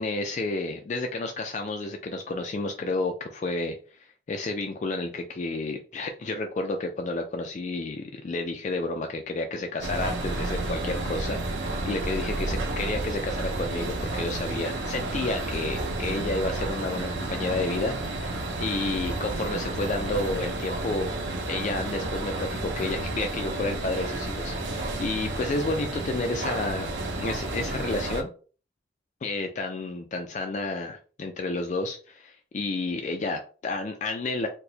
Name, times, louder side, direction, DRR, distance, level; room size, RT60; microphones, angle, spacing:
voice 1, 0.0-21.2 21.5-26.9 27.2-28.3 29.2-34.5, left 2 dB, 40° left, 4 dB, 0.3 m, -31 dB
sound 1, 9.8-28.2, right 2 dB, 90° right, 0.7 m, -31 dB
4.4 x 2.1 x 2.6 m, 0.39 s
head